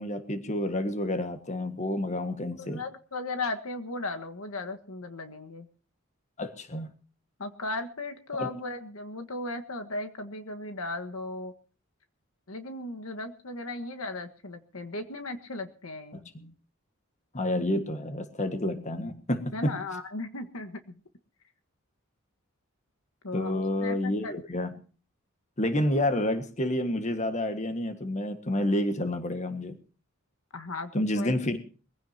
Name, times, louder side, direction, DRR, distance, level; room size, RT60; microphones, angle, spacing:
voice 1, 0.0-2.8 6.4-6.9 8.4-8.5 16.1-16.5 17.3-19.8 23.3-24.7 25.6-29.8 30.9-31.6, left 1 dB, 35° left, 9 dB, 1.7 m, -29 dB
voice 2, 2.4-5.7 7.4-11.5 12.5-16.3 19.5-20.8 23.2-24.3 30.5-31.4, left 2 dB, 80° left, 7 dB, 1.6 m, -36 dB
23.0 x 16.0 x 2.9 m, 0.36 s
head